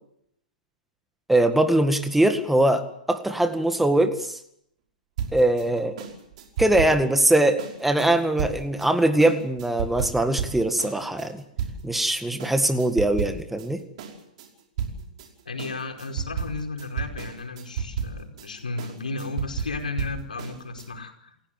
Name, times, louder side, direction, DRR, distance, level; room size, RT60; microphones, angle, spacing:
voice 1, 1.3-4.4 5.3-6.0 6.6-11.4 11.8-13.8, right 1 dB, 5° right, 8 dB, 2.0 m, -22 dB
sound 1, 5.2-12.1 12.4-13.7 14.0-20.9, right 7 dB, 50° right, 5.4 m, -33 dB
voice 2, 15.4-21.3, left 3 dB, 75° left, 4 dB, 4.9 m, -34 dB
29.0 x 16.0 x 7.8 m, 0.74 s
figure-of-eight pair, 110°, 4 cm